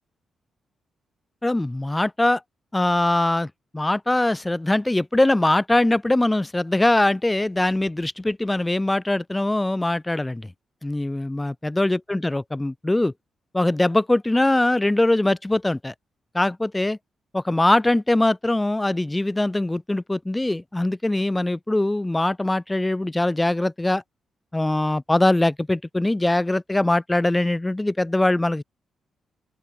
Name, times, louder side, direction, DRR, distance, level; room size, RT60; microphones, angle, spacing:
voice 1, 1.4-2.4 2.7-10.5 10.8-13.1 13.5-15.9 16.3-17.0 17.3-24.0 24.5-28.6, left 1 dB, 15° left, 5.3 m, -22 dB
open air
cardioid pair, 95°, 0 cm